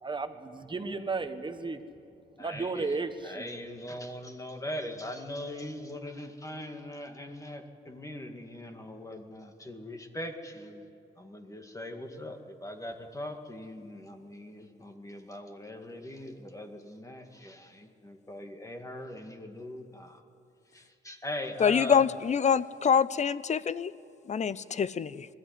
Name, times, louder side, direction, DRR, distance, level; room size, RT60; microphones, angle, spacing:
voice 1, 0.0-1.8 2.4-3.5, right 3 dB, 25° right, 8 dB, 1.4 m, -34 dB
voice 2, 2.4-10.9 11.2-20.2 20.7-22.0, left 1 dB, 15° left, 4 dB, 2.1 m, -41 dB
voice 3, 21.6-23.9 24.3-25.3, left 7 dB, 35° left, 18 dB, 0.6 m, -25 dB
21.0 x 14.0 x 9.6 m, 2.7 s
cardioid pair, 90°, 20 cm